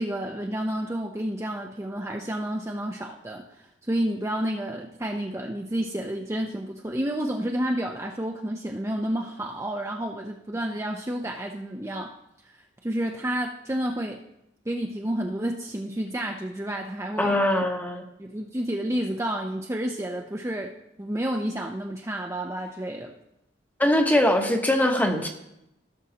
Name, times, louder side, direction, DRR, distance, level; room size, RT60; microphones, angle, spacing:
voice 1, 0.0-12.1 12.5-14.2 14.7-17.4 18.2-20.7 21.0-23.1, right 1 dB, 15° right, 1 dB, 0.5 m, -30 dB
voice 2, 17.2-18.0 23.8-25.3, left 1 dB, 10° left, 3 dB, 0.9 m, -22 dB
16.0 x 6.2 x 2.8 m, 0.83 s
head